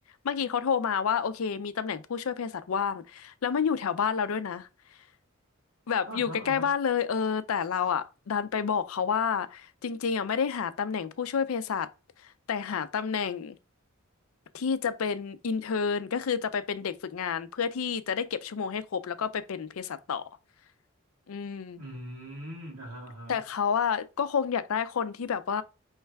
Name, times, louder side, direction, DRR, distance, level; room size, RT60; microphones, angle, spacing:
voice 1, 0.2-4.7 5.9-11.9 12.2-13.6 14.5-20.2 21.3-21.8 23.3-25.6, left 6 dB, 75° left, 0.5 m, -29 dB
voice 2, 6.1-6.7 21.8-23.4, equal, 90° right, 1.7 m, -41 dB
4.5 x 3.2 x 3.3 m
head